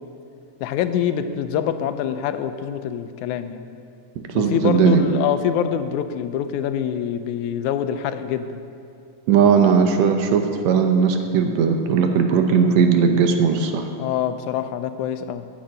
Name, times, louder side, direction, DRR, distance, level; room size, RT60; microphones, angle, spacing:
voice 1, 0.6-3.6 4.3-8.6 14.0-15.4, left 9 dB, 85° left, 10 dB, 2.0 m, -25 dB
voice 2, 4.2-5.1 9.3-13.9, right 6 dB, 75° right, 5 dB, 1.9 m, -18 dB
10.0 x 7.1 x 8.9 m, 2.5 s
omnidirectional pair, 3.4 m